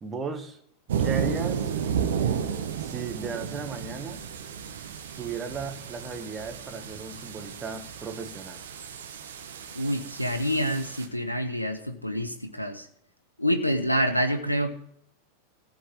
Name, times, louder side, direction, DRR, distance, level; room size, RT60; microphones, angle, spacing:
voice 1, 0.0-0.6 1.0-1.7 2.8-4.3 5.2-8.6, right 5 dB, 20° right, 1.8 m, -35 dB
sound 1, 0.9-11.1, right 7 dB, 60° right, 1.7 m, -32 dB
voice 2, 9.7-12.9 13.4-14.7, equal, 90° left, 1.2 m, -27 dB
15.0 x 5.4 x 8.6 m
figure-of-eight pair, 90°, 0 cm